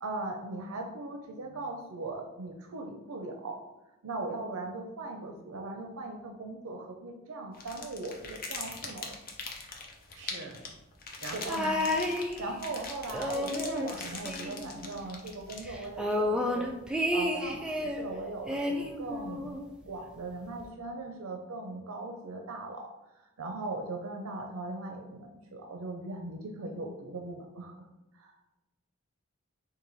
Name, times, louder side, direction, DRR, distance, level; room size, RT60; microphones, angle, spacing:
voice 1, 0.0-3.6 4.0-9.1 11.3-11.4 12.4-16.7 17.1-22.9 23.2-27.9 28.2-28.3, right 2 dB, 90° right, 2 dB, 0.5 m, -39 dB
sound 1, 7.5-16.0, left 4 dB, 45° left, 0.6 m, -42 dB
voice 2, 10.1-10.6 11.2-11.8, right 2 dB, 55° right, 3 dB, 0.8 m, -41 dB
sound 2, 11.5-12.8 13.1-15.0 15.3-15.4 15.7-18.0 18.5-19.7 20.6-20.7, left 1 dB, 5° right, 0.3 m, -31 dB
4.7 x 2.6 x 3.9 m, 1.0 s
head